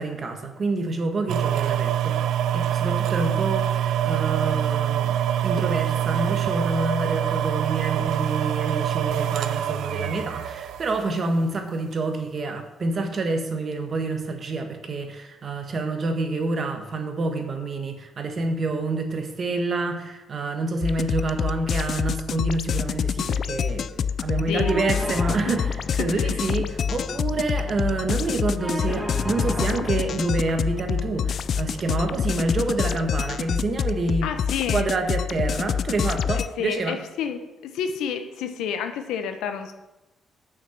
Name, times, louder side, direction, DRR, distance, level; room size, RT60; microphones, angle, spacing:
voice 1, 0.0-2.2 2.5-34.3 34.7-37.0, right 3 dB, 45° right, 6 dB, 1.4 m, -27 dB
sound 1, 1.3-11.3 11.9-12.0, right 10 dB, 80° right, 0.5 m, -25 dB
sound 2, 20.8-36.5, left 7 dB, 60° left, 0.3 m, -27 dB
voice 2, 24.5-24.9 25.5-25.6 26.0-26.4 34.2-34.9 36.3-39.7, left 7 dB, 90° left, 8 dB, 0.9 m, -30 dB
sound 3, 24.6-32.6, equal, ahead, 1.5 m, -36 dB
6.5 x 6.1 x 7.0 m, 1.0 s
cardioid pair, 90°, 0 cm